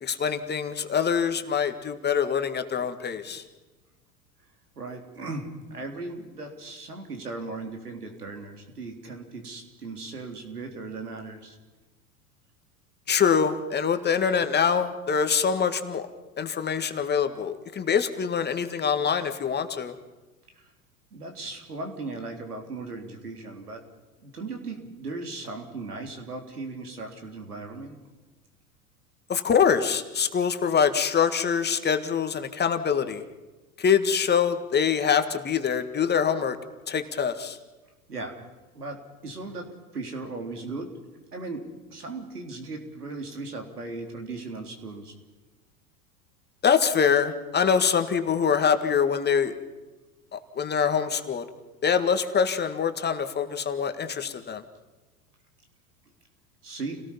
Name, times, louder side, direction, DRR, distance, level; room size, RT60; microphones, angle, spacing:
voice 1, 0.0-3.4 13.1-16.1 16.4-20.0 29.3-33.2 33.8-36.6 36.9-37.6 46.6-49.5 50.3-51.5 51.8-54.6, left 7 dB, 20° left, 8 dB, 1.9 m, -24 dB
voice 2, 4.8-11.6 20.6-20.7 21.1-23.8 24.2-28.0 38.1-38.5 38.7-41.0 41.3-41.6 41.9-45.1 56.6-57.0, right 3 dB, 85° right, 3 dB, 4.1 m, -37 dB
30.0 x 18.5 x 5.6 m, 1.2 s
figure-of-eight pair, 90°, 45 cm